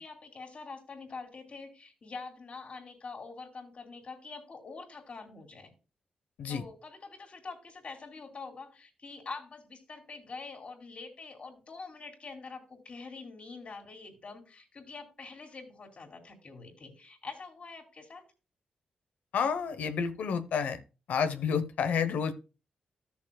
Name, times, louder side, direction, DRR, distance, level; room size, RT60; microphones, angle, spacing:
voice 1, 0.0-5.7 6.5-18.2, left 4 dB, 55° left, 1 dB, 3.3 m, -45 dB
voice 2, 19.3-20.8 21.1-22.3, left 6 dB, 85° left, 9 dB, 1.0 m, -30 dB
14.0 x 7.0 x 2.3 m, 0.31 s
cardioid pair, 70°, 3 cm